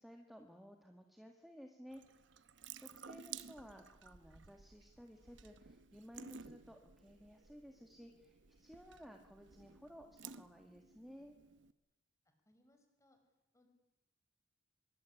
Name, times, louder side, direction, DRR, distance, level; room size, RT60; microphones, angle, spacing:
voice 1, 0.0-2.0 2.8-11.3, equal, ahead, 4 dB, 1.9 m, -56 dB
Water tap faucet / Sink (filling or washing) / Drip, 1.9-11.7, right 7 dB, 70° right, 1.1 m, -55 dB
voice 2, 12.3-13.2 13.5-13.7, left 1 dB, 15° left, 5 dB, 5.6 m, -71 dB
25.0 x 23.0 x 10.0 m, 1.0 s
head